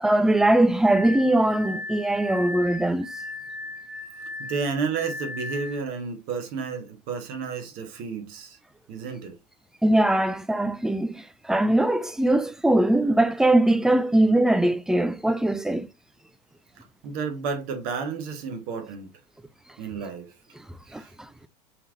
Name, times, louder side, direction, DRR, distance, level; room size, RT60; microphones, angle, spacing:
voice 1, 0.0-3.1 9.8-15.9 20.9-21.3, right 1 dB, ahead, 0.3 m, -21 dB
Glass, 0.8-5.9, left 2 dB, 85° right, 1.5 m, -37 dB
voice 2, 4.4-8.6 8.9-9.3 17.0-19.1 19.8-20.3 20.9-21.1, right 5 dB, 45° right, 1.5 m, -31 dB
5.7 x 3.6 x 2.5 m
figure-of-eight pair, 80°, 20 cm